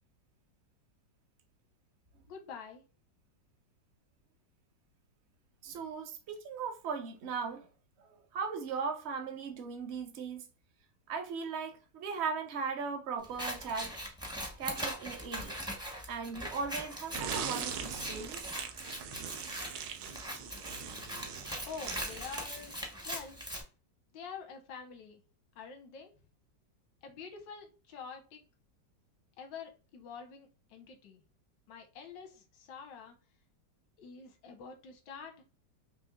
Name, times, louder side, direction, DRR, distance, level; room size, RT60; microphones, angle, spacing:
voice 1, 2.3-2.8 21.6-23.4 24.1-25.2 25.5-26.1 27.0-28.4 29.4-31.2 31.7-33.2 34.0-35.4, left 6 dB, 90° left, 1.6 m, -47 dB
voice 2, 5.6-7.7 8.0-10.5 11.1-14.0 14.6-18.5, right 5 dB, 55° right, 0.7 m, -38 dB
Scissors, 13.2-23.6, equal, 5° right, 0.4 m, -41 dB
sound 1, 17.1-23.0, right 7 dB, 75° right, 1.2 m, -41 dB
5.1 x 3.0 x 2.2 m
omnidirectional pair, 1.9 m